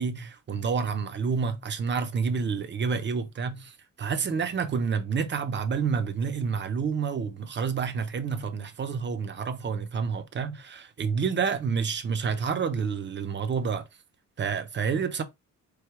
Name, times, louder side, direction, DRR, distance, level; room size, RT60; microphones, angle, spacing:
voice 1, 0.0-13.9 14.4-15.2, right 5 dB, 35° right, 0.7 m, -29 dB
4.7 x 2.2 x 4.6 m
wide cardioid pair, 170°, 34 cm